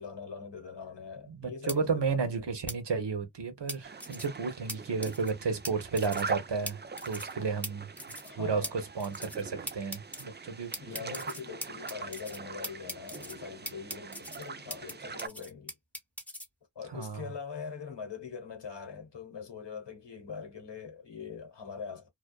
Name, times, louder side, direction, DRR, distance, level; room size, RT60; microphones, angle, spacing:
voice 1, 0.0-2.3 8.2-8.7 10.8-15.7 16.7-22.1, left 6 dB, 75° left, 1.1 m, -42 dB
voice 2, 1.3-7.9 8.4-11.2 16.9-17.3, right 5 dB, 75° right, 0.9 m, -33 dB
sound 1, 1.7-1.8 2.7-2.8 3.7-4.3 4.7-4.8 5.0-5.3 5.6-5.7 6.0-6.3 6.7-6.8 7.0-7.3 7.6-7.7 8.0-8.3 8.6-8.7 9.0-9.4 9.7-10.2 10.7-12.4 12.6-13.3 13.7-14.9 15.2-16.5, equal, 5° left, 0.8 m, -39 dB
sound 2, 3.8-15.3, right 5 dB, 25° right, 0.3 m, -42 dB
2.4 x 2.3 x 2.2 m
wide cardioid pair, 55°, 43 cm